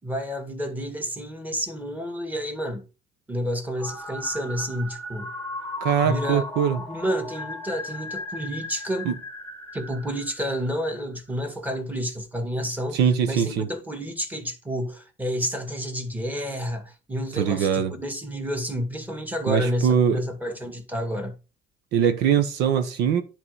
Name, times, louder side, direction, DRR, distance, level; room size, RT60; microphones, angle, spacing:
voice 1, 0.0-2.9 3.3-5.3 6.0-6.4 6.9-9.1 9.7-13.0 13.3-21.3, equal, 10° right, 1.9 m, -30 dB
sound 1, 3.8-11.1, left 2 dB, 10° left, 1.2 m, -36 dB
voice 2, 5.8-6.8 9.0-9.1 12.9-13.7 17.4-17.9 19.5-20.2 21.9-23.2, right 8 dB, 90° right, 1.1 m, -22 dB
10.0 x 4.0 x 4.8 m
cardioid pair, 110°, 17 cm